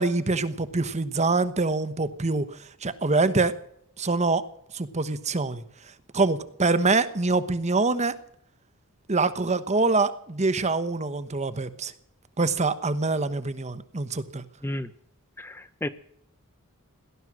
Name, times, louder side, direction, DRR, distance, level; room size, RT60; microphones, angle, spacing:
voice 1, 0.0-3.6 4.0-4.4 4.7-5.6 6.1-8.2 9.1-11.9 12.4-14.4, right 3 dB, 30° right, 13 dB, 1.1 m, -25 dB
voice 2, 15.4-15.9, left 1 dB, 10° left, 12 dB, 0.6 m, -32 dB
18.0 x 12.5 x 6.3 m, 0.72 s
head